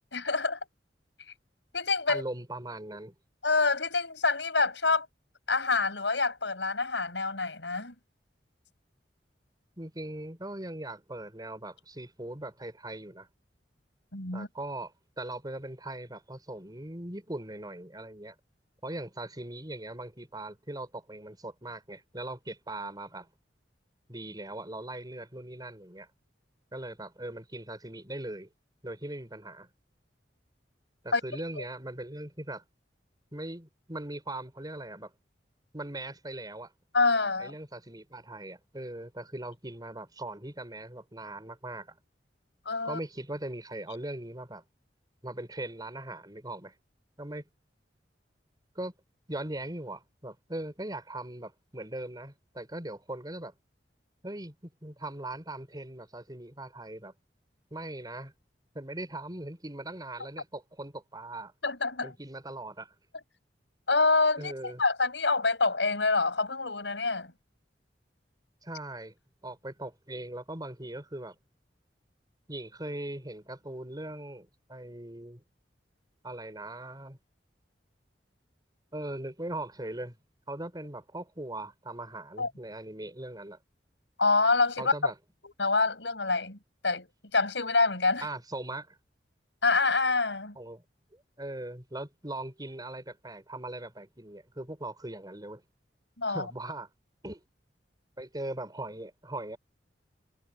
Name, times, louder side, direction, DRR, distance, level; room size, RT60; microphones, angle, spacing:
voice 1, 0.1-0.6 1.7-2.2 3.4-5.1 5.5-7.9 14.1-14.5 31.1-31.2 31.6-31.7 36.9-37.5 42.6-43.0 61.6-62.1 63.9-64.5 64.8-67.3 82.4-82.5 84.2-85.1 85.4-86.6 86.8-87.1 87.3-88.3 89.6-90.6 96.2-96.4, left 3 dB, 90° left, 6.1 m, -26 dB
voice 2, 2.1-3.1 9.8-13.3 14.3-18.4 18.8-23.3 24.1-26.1 26.7-28.5 28.8-29.7 31.0-32.6 33.3-35.1 35.7-36.7 37.4-42.0 42.8-44.6 45.2-46.7 47.2-47.4 48.8-48.9 49.3-53.5 54.2-57.1 57.7-58.3 58.7-61.5 62.0-62.9 64.4-64.8 68.6-69.2 69.4-71.4 72.5-75.4 76.2-77.2 78.9-80.2 80.5-83.6 84.8-85.1 88.2-89.0 90.6-90.8 91.1-95.6 96.3-96.9 97.2-97.4 98.2-99.6, right 1 dB, 25° right, 5.8 m, -40 dB
head